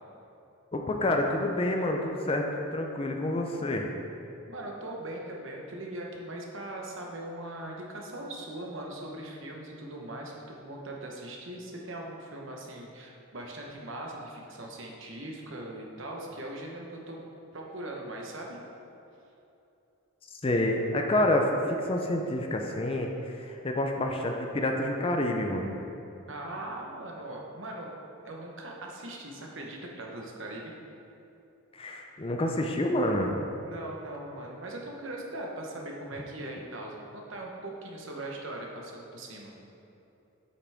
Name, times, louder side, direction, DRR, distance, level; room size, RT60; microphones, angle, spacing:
voice 1, 0.7-3.9 20.3-25.8 31.7-33.5, left 1 dB, 25° left, 2 dB, 0.5 m, -28 dB
voice 2, 4.5-10.3 10.6-17.2 17.5-18.6 26.3-27.9 28.2-30.7 33.6-39.5, right 1 dB, 60° right, -1 dB, 1.0 m, -40 dB
8.2 x 5.8 x 3.5 m, 2.8 s
head